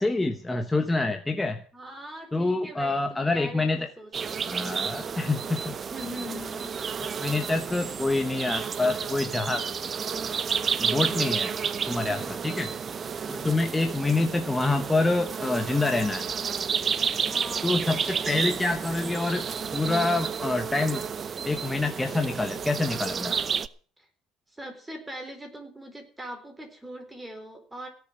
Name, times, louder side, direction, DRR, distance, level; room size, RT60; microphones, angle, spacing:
voice 1, 0.0-1.6 2.3-3.9 4.4-5.7 7.2-9.6 10.8-11.5 11.9-12.7 13.3-16.3 17.6-19.5 19.7-21.0 21.4-23.4, left 2 dB, 10° left, 6 dB, 1.0 m, -26 dB
voice 2, 1.7-4.7 5.9-6.7 12.0-12.3 17.3-18.3 24.0-24.1 24.5-27.9, equal, 10° right, 5 dB, 4.1 m, -42 dB
sound 1, 4.1-23.7, right 6 dB, 30° right, 0.7 m, -31 dB
17.0 x 7.0 x 8.8 m, 0.43 s
cardioid pair, 125°, 0 cm